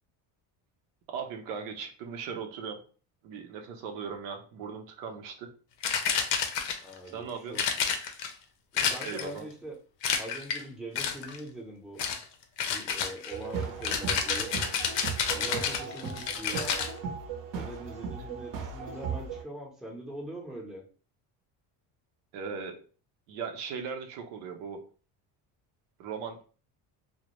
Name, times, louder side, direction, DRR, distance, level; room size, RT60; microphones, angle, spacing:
voice 1, 1.1-2.8 3.2-5.5 7.1-7.6 9.0-9.5 22.3-22.8 23.3-24.8 26.0-26.4, right 6 dB, 90° right, 4 dB, 0.6 m, -38 dB
sound 1, 5.8-7.0 7.6-8.3 8.8-9.4 10.0-10.6 11.0-11.4 12.0-12.2 12.6-16.9, left 7 dB, 70° left, 0.6 m, -30 dB
voice 2, 6.8-7.9 8.7-9.8 10.2-12.0 12.7-14.5 15.3-16.9 17.5-20.8, right 1 dB, ahead, 0 dB, 0.6 m, -42 dB
sound 2, 13.3-19.4, right 6 dB, 45° right, 0.6 m, -37 dB
2.1 x 2.0 x 2.9 m, 0.38 s
cardioid pair, 100°, 46 cm